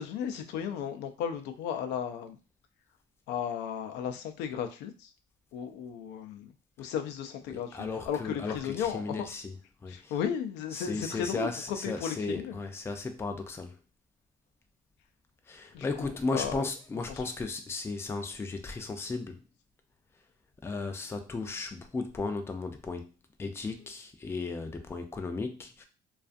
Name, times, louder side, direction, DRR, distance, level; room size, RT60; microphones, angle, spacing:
voice 1, 0.0-2.4 3.3-5.1 5.5-6.5 6.8-9.3 9.9-12.6 15.7-16.6 17.1-17.2, left 8 dB, 90° left, 0.4 m, -35 dB
voice 2, 7.5-9.5 9.8-10.1 10.7-13.8 15.5-19.4 20.6-23.1 23.4-25.9, left 3 dB, 15° left, 0.3 m, -35 dB
2.5 x 2.3 x 2.4 m
cardioid pair, 110°, 17 cm